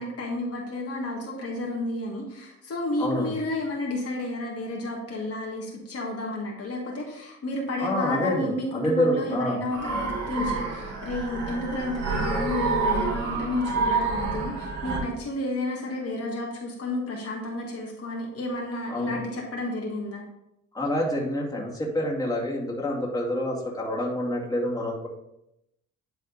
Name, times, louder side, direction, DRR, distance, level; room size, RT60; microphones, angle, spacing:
voice 1, 0.0-20.2, left 2 dB, 50° left, -2 dB, 1.7 m, -31 dB
voice 2, 3.0-3.3 7.8-9.6 18.9-19.2 20.7-25.1, left 1 dB, 10° left, -4 dB, 2.2 m, -27 dB
sound 1, 9.7-15.0, right 4 dB, 60° right, 2.6 m, -28 dB
10.5 x 3.5 x 4.0 m, 0.83 s
cardioid pair, 90°, 30 cm